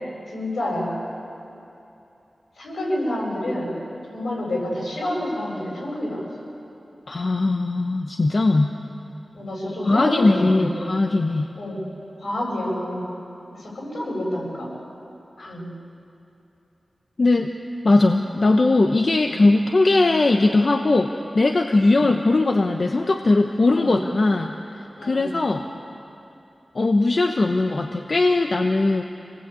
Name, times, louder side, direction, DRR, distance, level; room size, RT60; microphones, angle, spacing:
voice 1, 0.3-0.9 2.6-3.7 4.1-6.2 9.3-10.9 11.6-11.8 12.2-13.2 13.6-14.7 15.5-15.7 19.2-19.3 21.9-22.0 23.7-24.0 25.0-25.3, left 1 dB, 80° left, -3 dB, 8.0 m, -28 dB
voice 2, 7.1-8.7 9.8-11.5 15.4-15.6 17.2-17.5 17.8-25.6 26.7-29.0, left 2 dB, 50° left, 4 dB, 1.0 m, -19 dB
27.5 x 19.5 x 8.5 m, 2.8 s
wide cardioid pair, 90°, 0 cm